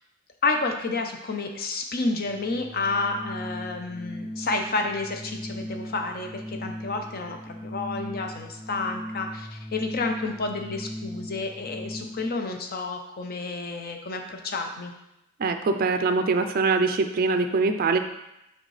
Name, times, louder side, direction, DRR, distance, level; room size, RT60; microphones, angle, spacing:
voice 1, 0.4-14.9, left 3 dB, 45° left, 4 dB, 0.7 m, -30 dB
Organ, 2.1-12.4, equal, 10° left, 0.9 m, -38 dB
voice 2, 15.4-18.0, right 4 dB, 45° right, 6 dB, 0.4 m, -23 dB
6.4 x 4.5 x 3.2 m, 0.87 s
head